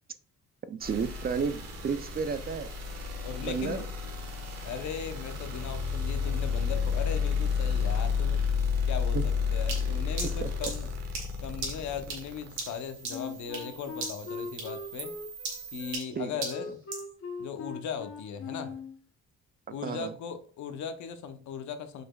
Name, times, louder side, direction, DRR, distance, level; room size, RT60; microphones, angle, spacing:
voice 1, 0.7-2.7 3.4-3.8 9.1-9.2 10.4-10.7 16.1-16.4 19.7-20.1, right 6 dB, 30° right, 0.4 m, -32 dB
sound 1, 0.8-15.9, left 5 dB, 60° right, 1.2 m, -32 dB
voice 2, 3.2-3.9 4.6-8.4 8.9-10.9 11.4-15.1 15.7-16.8 17.4-18.8 19.7-22.0, left 6 dB, 70° left, 0.7 m, -38 dB
sound 2, 9.7-13.7 14.0-14.3 14.6-17.1, right 4 dB, 80° right, 1.9 m, -38 dB
Wind instrument woodwind instrument, 13.1-19.0, left 4 dB, 45° left, 0.9 m, -40 dB
4.9 x 4.3 x 2.2 m
cardioid pair, 90°, 30 cm